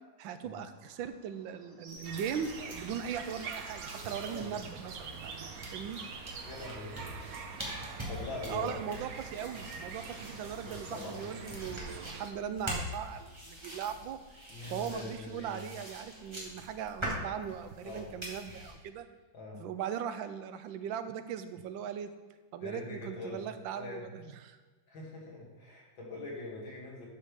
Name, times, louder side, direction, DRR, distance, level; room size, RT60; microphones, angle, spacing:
voice 1, 0.2-6.0 8.5-14.2 14.7-19.1 19.5-22.1 22.5-24.6, right 8 dB, 80° right, 10 dB, 1.4 m, -39 dB
sound 1, 0.7-8.5, right 1 dB, 40° right, 1.9 m, -59 dB
sound 2, 1.9-18.7, equal, 15° right, 1.6 m, -44 dB
sound 3, 2.0-12.3, right 5 dB, 60° right, 1.1 m, -44 dB
voice 2, 6.5-6.9 8.1-8.8 10.6-11.2 14.5-15.7 17.8-18.1 19.3-19.6 22.6-23.4 23.7-24.0 24.9-27.1, left 2 dB, 75° left, -4 dB, 2.9 m, -43 dB
11.5 x 6.5 x 3.5 m, 1.3 s
omnidirectional pair, 2.1 m